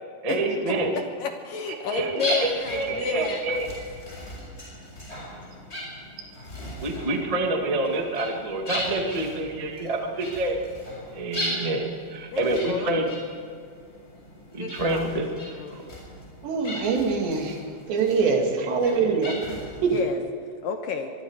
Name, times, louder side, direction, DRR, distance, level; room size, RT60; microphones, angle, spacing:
voice 1, 0.2-1.0 1.7-3.9 6.8-10.6 11.1-13.1 14.5-15.9 18.6-19.2, right 2 dB, 50° right, 2 dB, 0.4 m, -28 dB
voice 2, 0.9-3.4 12.3-12.4 12.7-12.9 14.6-15.0 15.6-15.8 19.9-20.2 20.6-21.1, left 6 dB, 65° left, 5 dB, 2.4 m, -31 dB
sound 1, 2.2-20.1, equal, 15° left, 7.2 m, -38 dB
voice 3, 16.4-17.6 17.9-19.3 19.8-20.0, right 5 dB, 80° right, 1 dB, 4.9 m, -23 dB
24.0 x 23.5 x 5.0 m, 2.2 s
omnidirectional pair, 5.0 m